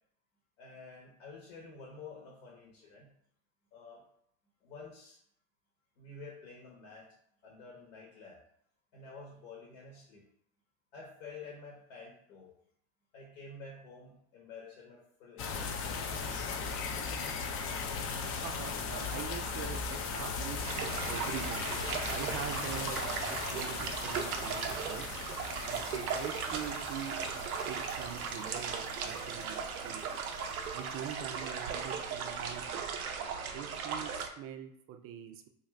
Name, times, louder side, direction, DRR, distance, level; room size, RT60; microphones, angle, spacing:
voice 1, 0.6-3.1 3.7-4.0 4.6-5.2 6.0-7.1 7.4-8.4 8.9-10.2 10.9-12.5 13.1-16.9, left 4 dB, 70° left, -2 dB, 1.1 m, -50 dB
sound 1, 15.4-31.2, left 5 dB, 35° left, 0.4 m, -38 dB
voice 2, 18.4-21.7 22.1-25.1 25.6-30.0 30.7-32.9 33.5-35.5, right 9 dB, 35° right, 6 dB, 0.4 m, -43 dB
sound 2, 20.7-34.3, right 6 dB, 90° right, 0.5 m, -37 dB
2.6 x 2.4 x 3.2 m, 0.68 s
hypercardioid pair, 90°, 42 cm